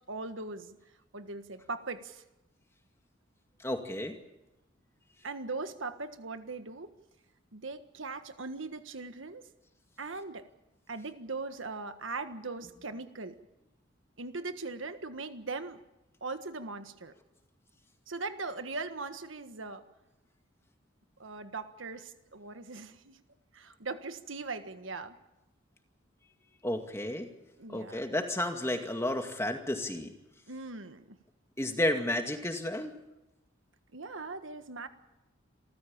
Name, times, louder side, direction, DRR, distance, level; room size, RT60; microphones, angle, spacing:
voice 1, 0.1-0.8 1.1-2.2 5.2-6.9 7.5-9.5 10.0-10.5 10.9-13.4 14.2-15.8 16.2-17.1 18.1-19.8 21.2-23.2 23.5-25.1 27.6-28.0 30.5-31.2 33.9-34.9, right 3 dB, 80° right, 9 dB, 1.5 m, -40 dB
voice 2, 3.6-4.2 26.6-27.3 27.7-30.1 31.6-32.9, left 1 dB, 15° left, 4 dB, 2.2 m, -32 dB
27.5 x 14.5 x 8.7 m, 0.95 s
head